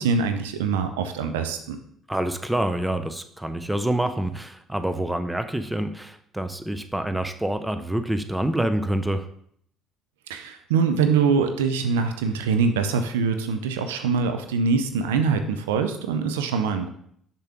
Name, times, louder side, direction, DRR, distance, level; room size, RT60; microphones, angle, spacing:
voice 1, 0.0-1.8 10.3-16.9, right 5 dB, 85° right, 7 dB, 0.5 m, -23 dB
voice 2, 2.1-9.3, right 1 dB, 10° right, 10 dB, 0.7 m, -27 dB
6.7 x 5.9 x 3.5 m, 0.66 s
hypercardioid pair, 55°, 0 cm